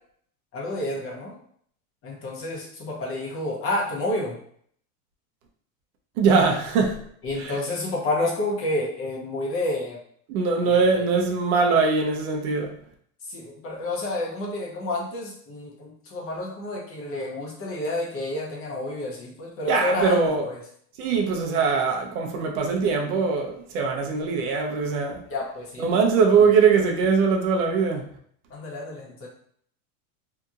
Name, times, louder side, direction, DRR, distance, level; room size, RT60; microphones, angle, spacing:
voice 1, 0.5-1.4 2.0-4.4 7.2-10.0 10.9-11.3 13.2-20.6 25.3-25.9 26.3-26.4 28.5-29.3, left 2 dB, 30° left, -2 dB, 0.7 m, -30 dB
voice 2, 6.2-7.0 7.4-7.5 10.3-12.7 19.7-20.4 21.0-25.2 25.8-28.0, right 5 dB, 70° right, 1 dB, 0.8 m, -21 dB
2.8 x 2.5 x 2.4 m, 0.63 s
supercardioid pair, 125°, 44 cm